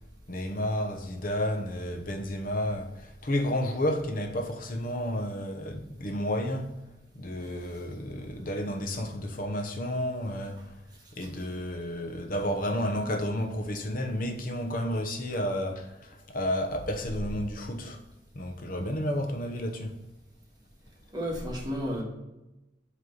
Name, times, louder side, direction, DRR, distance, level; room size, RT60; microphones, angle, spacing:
voice 1, 0.3-6.8 7.1-10.8 11.1-18.0 18.3-20.0, left 1 dB, 55° left, 1.0 m, -31 dB
voice 2, 21.1-22.0, equal, 25° right, 1.7 m, -32 dB
8.0 x 3.2 x 5.4 m
head